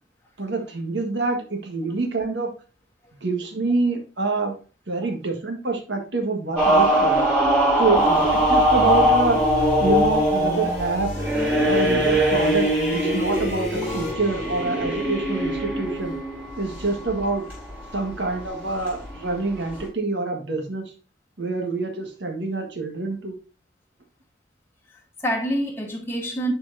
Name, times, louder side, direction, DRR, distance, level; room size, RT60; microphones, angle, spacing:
voice 1, 0.4-2.5 3.2-4.5 4.9-7.2 7.8-9.4 9.8-11.1 11.6-16.1 16.5-17.4 17.9-20.8 21.4-23.3, right 3 dB, 75° right, 1.7 m, -26 dB
sound 1, 6.6-19.8, equal, 10° right, 3.5 m, -22 dB
sound 2, 7.9-14.1, left 1 dB, 40° left, 1.4 m, -33 dB
voice 2, 24.9-26.5, right 1 dB, 15° left, 1.2 m, -28 dB
10.5 x 4.6 x 2.7 m
head